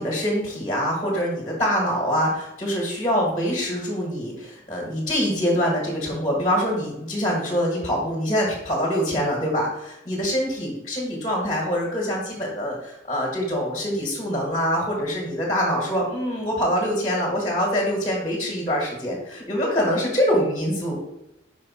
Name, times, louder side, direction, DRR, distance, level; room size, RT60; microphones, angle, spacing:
voice 1, 0.0-21.0, equal, 20° left, -3 dB, 1.5 m, -24 dB
5.5 x 4.6 x 4.2 m, 0.85 s
head